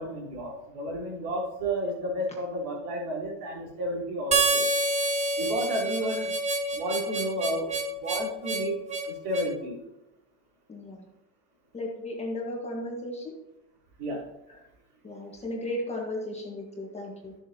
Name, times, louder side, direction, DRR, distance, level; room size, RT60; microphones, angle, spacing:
voice 1, 0.0-4.7 5.4-6.3 6.7-7.7 8.0-8.8 9.1-9.8 14.0-14.2, right 1 dB, 60° right, -3 dB, 3.9 m, -32 dB
Harmonica, 4.3-9.5, right 2 dB, 15° right, 0.7 m, -28 dB
voice 2, 10.7-11.0 11.7-13.3 15.0-17.3, left 1 dB, 15° left, -1 dB, 1.7 m, -35 dB
12.5 x 7.6 x 3.0 m, 0.88 s
supercardioid pair, 140°, 43 cm